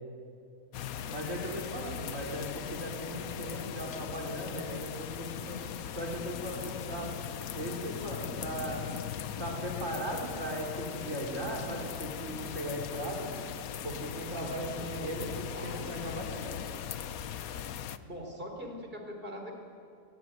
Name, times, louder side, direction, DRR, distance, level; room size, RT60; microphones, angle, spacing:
sound 1, 0.7-18.0, left 9 dB, 90° left, 1.3 m, -39 dB
voice 1, 1.1-5.6 5.9-7.1 7.5-8.8 9.4-13.3 13.8-15.4 15.6-16.7, right 1 dB, 60° right, -1 dB, 4.9 m, -37 dB
voice 2, 14.2-16.3 17.8-19.5, equal, 40° right, 2 dB, 4.4 m, -44 dB
23.0 x 21.0 x 9.4 m, 2.5 s
omnidirectional pair, 1.4 m